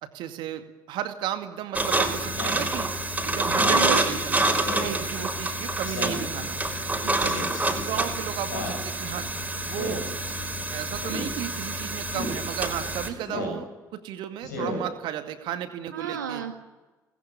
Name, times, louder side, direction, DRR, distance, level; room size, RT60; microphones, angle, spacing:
voice 1, 0.0-2.9 3.2-4.6 5.1-6.6 7.7-9.3 9.6-10.0 10.7-16.4, right 11 dB, 55° right, 8 dB, 2.3 m, -34 dB
sound 1, 1.7-13.1, right 2 dB, 15° right, 5.3 m, -27 dB
Speech synthesizer, 2.3-2.6 3.5-3.9 4.7-5.0 5.8-6.3 7.2-7.6 8.5-8.8 9.8-10.1 11.0-11.3 12.1-12.4 13.3-13.6 14.4-14.8, left 2 dB, 75° left, 7.2 m, -33 dB
voice 2, 3.7-4.0 4.8-5.3 7.0-7.4 15.9-16.5, right 7 dB, 75° right, 5 dB, 1.5 m, -33 dB
28.0 x 20.5 x 10.0 m, 1.2 s
figure-of-eight pair, 55°, 10 cm